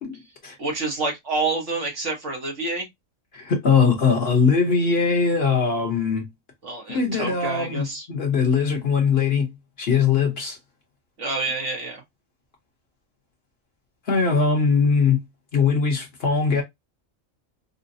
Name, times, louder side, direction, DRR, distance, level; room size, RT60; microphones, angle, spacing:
voice 1, 0.0-0.6 3.3-6.3 6.9-9.5 9.8-10.6 14.1-15.2 15.5-16.6, left 5 dB, 50° left, 1.1 m, -21 dB
voice 2, 0.6-2.9 6.6-8.1 11.2-12.0, right 3 dB, 60° right, 1.4 m, -28 dB
4.0 x 2.1 x 2.6 m
omnidirectional pair, 1.4 m